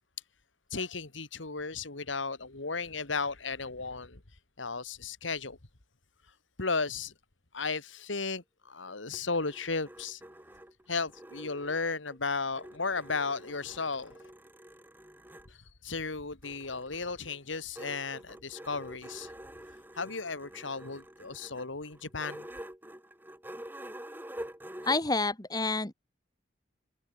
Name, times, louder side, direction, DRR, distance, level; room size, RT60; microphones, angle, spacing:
voice 1, 0.7-4.2 4.6-5.6 6.6-7.1 7.5-10.2 10.9-14.3 15.5-19.3 19.9-22.5, left 4 dB, 85° left, 2.4 m, -35 dB
sound 1, 8.9-12.2 12.6-15.5 16.4-25.0, right 1 dB, 10° right, 4.8 m, -47 dB
voice 2, 24.8-25.9, left 3 dB, 20° left, 1.5 m, -28 dB
head